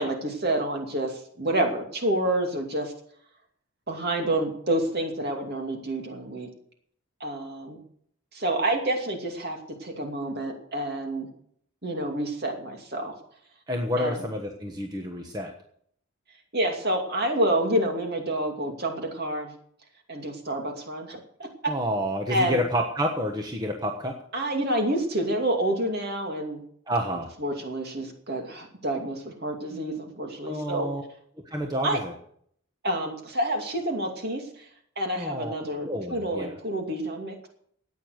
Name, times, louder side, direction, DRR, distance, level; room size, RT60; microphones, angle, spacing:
voice 1, 0.0-2.9 3.9-6.5 7.2-7.8 8.3-11.3 11.8-13.1 14.0-14.2 16.5-19.5 20.1-21.7 22.3-22.6 24.3-26.6 27.4-30.9 31.8-32.0 32.8-34.7 35.0-37.5, right 1 dB, 45° right, 3 dB, 2.6 m, -28 dB
voice 2, 13.7-15.5 21.7-24.1 26.9-27.3 30.5-31.0 31.4-32.1 35.2-35.5 35.8-36.5, equal, 20° right, 2 dB, 1.3 m, -29 dB
14.5 x 9.2 x 6.5 m, 0.63 s
head